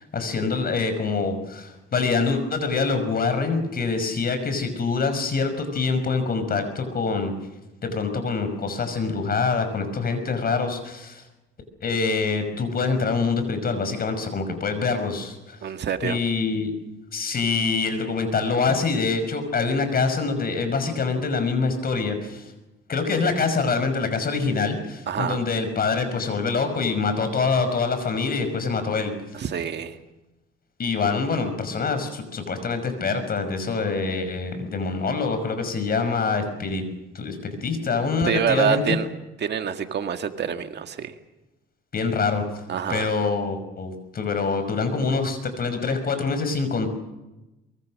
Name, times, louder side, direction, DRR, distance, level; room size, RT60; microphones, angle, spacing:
voice 1, 0.1-7.3 7.8-11.2 11.8-15.6 16.0-16.7 17.1-22.5 22.9-29.1 30.8-36.8 37.1-39.0 41.9-42.4 42.9-46.9, left 4 dB, 50° left, 9 dB, 6.0 m, -25 dB
voice 2, 15.6-16.2 25.1-25.4 29.3-30.0 38.2-39.1 39.4-41.1 42.7-43.1, right 7 dB, 60° right, 7 dB, 1.9 m, -26 dB
24.0 x 23.0 x 6.5 m, 0.99 s
cardioid pair, 90°, 20 cm